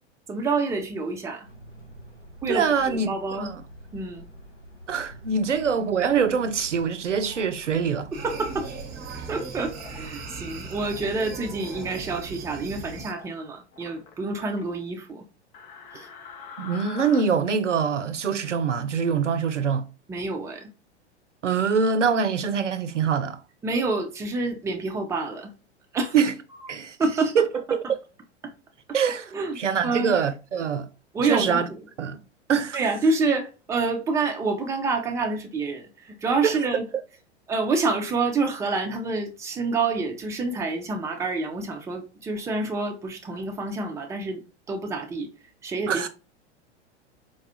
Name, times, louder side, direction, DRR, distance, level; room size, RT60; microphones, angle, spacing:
voice 1, 0.3-1.5 2.4-3.5 3.9-4.2 8.2-8.7 9.3-15.2 15.9-16.1 20.1-20.7 23.6-25.5 25.9-26.1 27.0-27.4 29.3-29.6 29.8-30.2 31.1-31.8 32.7-36.8 37.5-44.4 44.7-45.3 45.6-46.1, right 3 dB, 10° right, 0.5 m, -27 dB
sound 1, 1.4-8.9, right 1 dB, 85° left, 1.6 m, -45 dB
voice 2, 2.5-3.6 4.9-8.1 16.6-19.8 21.4-23.4 26.1-26.3 26.7-28.0 28.9-30.9 31.2-31.7 32.0-32.2 32.5-32.8 36.4-36.6 45.9-46.1, right 6 dB, 85° right, 0.5 m, -24 dB
sound 2, 5.9-6.5 7.2-7.5 8.3-8.8 9.7-10.1 10.6-11.2 11.5-11.9 12.9-13.3 13.7-14.6 15.5-17.2, left 6 dB, 45° left, 0.8 m, -45 dB
sound 3, 8.1-13.1, right 4 dB, 25° right, 0.9 m, -38 dB
4.3 x 2.3 x 2.8 m
figure-of-eight pair, 95°, 35 cm